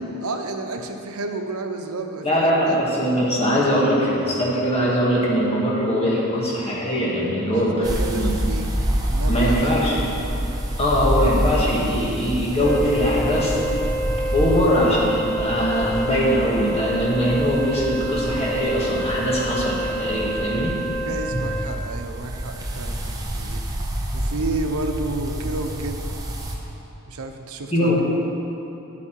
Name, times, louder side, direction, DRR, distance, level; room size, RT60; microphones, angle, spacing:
voice 1, 0.2-2.8 7.5-8.7 9.1-9.9 21.0-23.6 24.1-26.1 27.1-28.0, right 2 dB, 90° right, 5 dB, 0.8 m, -31 dB
voice 2, 2.2-8.4 9.2-10.1 10.8-13.8 14.3-20.8 21.3-21.4 27.7-28.0, equal, 30° left, -5 dB, 1.7 m, -21 dB
sound 1, 7.8-26.6, equal, 15° right, 0.8 m, -28 dB
Wind instrument woodwind instrument, 12.6-21.8, right 1 dB, 5° left, 0.5 m, -28 dB
9.9 x 8.4 x 4.6 m, 3.0 s
head